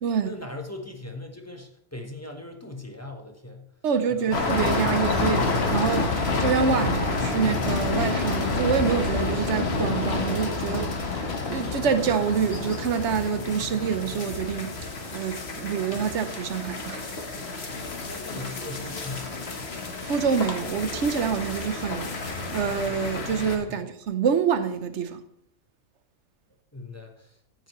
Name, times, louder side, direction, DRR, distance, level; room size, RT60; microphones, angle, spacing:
voice 1, 0.2-3.6 4.1-4.3 6.8-6.9 13.6-13.7 18.1-19.7 23.7-23.8 26.7-27.4, left 2 dB, 15° left, 1.0 m, -39 dB
voice 2, 3.8-5.4 5.7-11.2 11.5-17.1 20.0-25.2, right 6 dB, 60° right, 1.1 m, -27 dB
sound 1, 4.3-23.6, left 3 dB, 50° left, 1.4 m, -29 dB
14.0 x 7.9 x 3.1 m
omnidirectional pair, 1.4 m